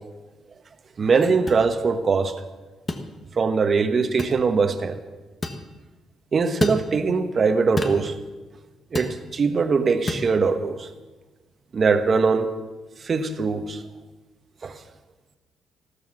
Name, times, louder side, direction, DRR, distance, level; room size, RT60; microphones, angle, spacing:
voice 1, 1.0-2.3 3.4-5.0 6.3-8.1 8.9-10.9 11.7-12.5 13.0-13.8 14.6-14.8, right 4 dB, 45° right, 8 dB, 1.3 m, -21 dB
sound 1, 1.5-1.6 2.9-3.1 4.2-4.4 5.4-5.6 6.6-6.8 7.8-8.0 8.9-9.2 10.1-10.3, left 3 dB, 30° left, 1.4 m, -28 dB
15.0 x 13.0 x 6.2 m, 1.2 s
cardioid pair, 90°, 0 cm